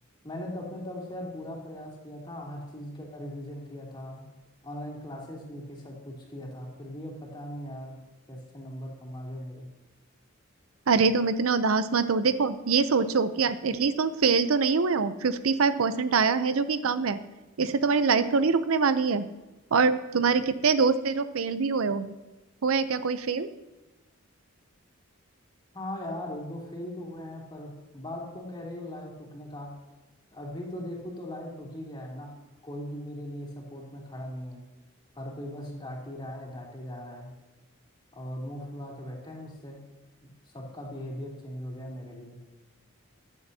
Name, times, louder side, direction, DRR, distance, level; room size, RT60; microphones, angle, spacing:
voice 1, 0.2-4.2 4.6-7.9 8.3-9.7 25.7-29.8 30.3-32.4 32.6-34.6 35.1-37.3 38.1-39.8 40.2-42.4, left 1 dB, 20° left, -2 dB, 2.9 m, -39 dB
voice 2, 10.9-17.2 17.6-19.3 19.7-22.1 22.6-23.5, right 5 dB, 80° right, 12 dB, 0.6 m, -24 dB
14.0 x 11.0 x 2.8 m, 1.1 s
head